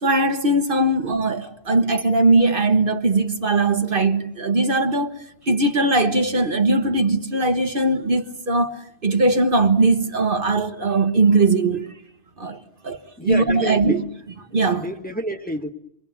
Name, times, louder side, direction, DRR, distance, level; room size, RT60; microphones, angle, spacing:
voice 1, 0.0-5.1 5.5-11.9 12.4-14.0 14.5-14.8, right 2 dB, 55° right, 1.4 m, -20 dB
voice 2, 13.2-14.0 14.7-15.7, right 1 dB, 10° left, 1.2 m, -29 dB
27.0 x 23.0 x 7.2 m
omnidirectional pair, 1.1 m